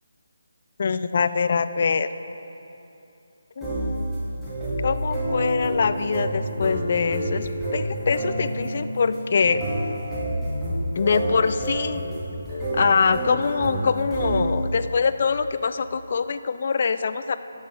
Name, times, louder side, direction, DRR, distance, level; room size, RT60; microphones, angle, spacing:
voice 1, 0.8-2.1 3.6-4.2 4.8-9.6 11.0-12.0 12.7-17.4, left 5 dB, 45° left, 12 dB, 0.3 m, -24 dB
sound 1, 3.6-14.8, right 1 dB, 5° right, 1.5 m, -28 dB
11.0 x 6.4 x 3.7 m, 2.9 s
figure-of-eight pair, 150°, 0 cm